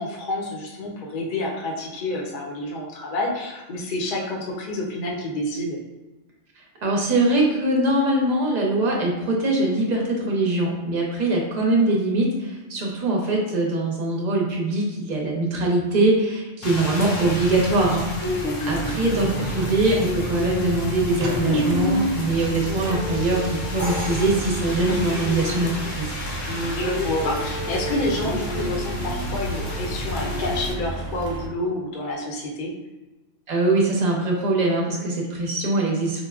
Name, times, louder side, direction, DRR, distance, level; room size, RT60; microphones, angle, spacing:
voice 1, 0.0-5.8 18.3-18.8 26.5-32.7, left 1 dB, 50° left, -2 dB, 0.6 m, -29 dB
voice 2, 6.8-26.1 33.5-36.2, right 2 dB, 45° right, -1 dB, 0.6 m, -22 dB
Rain, 16.6-30.7, left 2 dB, 80° left, 1.0 m, -29 dB
sound 1, 18.7-31.5, right 2 dB, 85° right, 0.3 m, -33 dB
Crash cymbal, 23.8-25.7, equal, 20° right, 0.9 m, -36 dB
4.5 x 2.1 x 2.3 m, 1.1 s
omnidirectional pair, 1.3 m